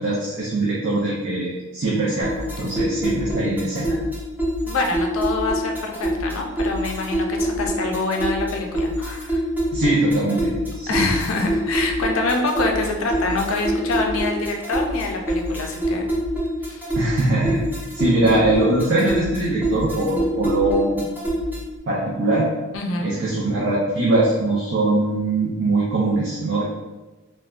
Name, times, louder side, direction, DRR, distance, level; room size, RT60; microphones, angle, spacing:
voice 1, 0.0-2.3 2.6-4.0 9.7-11.1 17.0-17.6 17.9-21.2 21.9-22.5 23.0-26.6, right 2 dB, 55° right, -7 dB, 0.6 m, -22 dB
sound 1, 2.2-21.8, equal, 10° right, 0.6 m, -26 dB
voice 2, 4.7-9.4 10.9-16.0 16.6-16.9 22.7-23.1, left 3 dB, 65° left, 2 dB, 0.4 m, -25 dB
3.2 x 2.2 x 2.4 m, 1.2 s
head